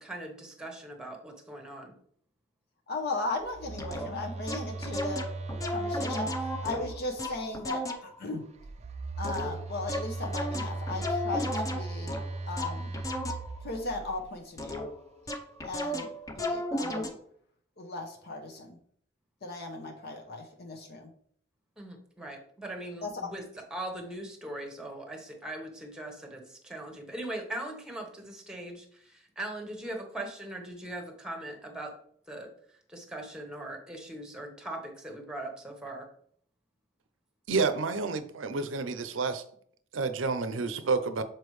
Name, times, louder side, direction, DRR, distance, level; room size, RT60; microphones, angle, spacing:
voice 1, 0.0-1.9 21.8-23.4 23.7-31.9 32.3-32.5 32.9-36.0, right 1 dB, 5° right, 2 dB, 1.1 m, -40 dB
voice 2, 2.9-5.3 5.7-6.3 6.6-8.5 9.2-12.2 12.5-13.0 13.6-14.8 15.6-16.1 16.4-17.2 17.8-18.8 19.4-21.1 23.0-23.1, left 2 dB, 55° left, 2 dB, 0.8 m, -37 dB
Telephone, 3.4-7.4 8.6-14.3, right 3 dB, 35° right, 0.4 m, -38 dB
sound 1, 3.8-4.1 4.5-8.2 9.2-13.7 14.6-15.0 15.3-17.1, left 1 dB, 20° left, 0.7 m, -34 dB
voice 3, 37.5-39.4 39.9-41.2, right 4 dB, 80° right, 10 dB, 0.6 m, -29 dB
6.9 x 4.4 x 3.1 m, 0.62 s
head